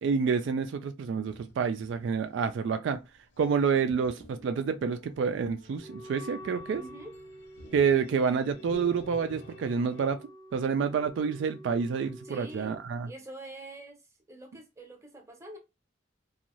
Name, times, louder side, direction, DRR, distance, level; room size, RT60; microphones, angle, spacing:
voice 1, 0.0-3.0 3.4-6.8 7.7-10.2 10.5-13.1, right 6 dB, 70° right, 0.3 m, -28 dB
sound 1, 1.1-10.1, equal, 70° left, 0.7 m, -51 dB
Wind instrument woodwind instrument, 5.8-12.8, equal, 15° left, 0.5 m, -48 dB
voice 2, 6.7-7.1 12.2-12.8 13.0-14.0 14.3-15.6, right 1 dB, 15° right, 0.7 m, -45 dB
2.6 x 2.3 x 3.0 m
head